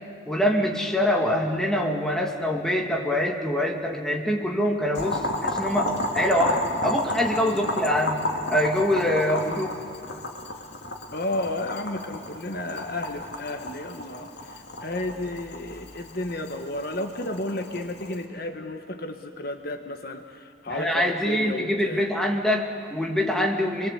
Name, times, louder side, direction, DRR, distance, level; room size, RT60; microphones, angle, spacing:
voice 1, 0.3-8.2 8.5-9.7 20.7-23.9, left 1 dB, 5° left, 0 dB, 2.2 m, -24 dB
Boiling, 4.9-18.2, left 1 dB, 65° left, 2.4 m, -32 dB
voice 2, 11.1-22.1, left 1 dB, 50° left, 5 dB, 1.4 m, -33 dB
27.5 x 23.0 x 8.2 m, 2.3 s
head